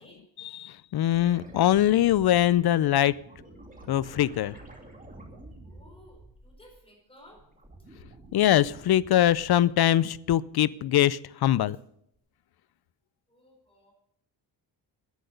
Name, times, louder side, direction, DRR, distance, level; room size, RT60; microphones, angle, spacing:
voice 1, 0.4-3.2 3.9-4.5 8.3-11.8, left 12 dB, 55° left, 20 dB, 0.5 m, -23 dB
sound 1, 1.0-6.8 7.2-9.7 12.1-12.2, right 1 dB, 15° right, 2.6 m, -49 dB
voice 2, 5.6-7.4 13.3-13.9, equal, 10° left, 0 dB, 4.8 m, -55 dB
10.5 x 10.0 x 6.7 m, 0.73 s
cardioid pair, 90°, 45 cm